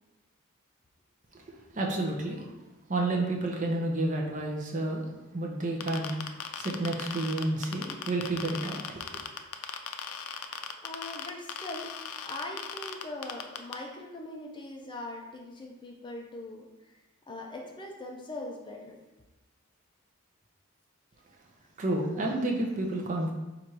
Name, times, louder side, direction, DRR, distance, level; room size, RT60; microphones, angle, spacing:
voice 1, 1.3-2.5 2.9-5.1 5.3-9.2 21.8-23.3, right 2 dB, 35° right, 0 dB, 0.6 m, -30 dB
sound 1, 5.8-13.7, left 8 dB, 85° left, 0.4 m, -37 dB
voice 2, 10.8-11.9 12.2-16.9 17.3-19.0, left 2 dB, 20° left, 0 dB, 0.5 m, -41 dB
4.3 x 2.5 x 4.6 m, 1.1 s
head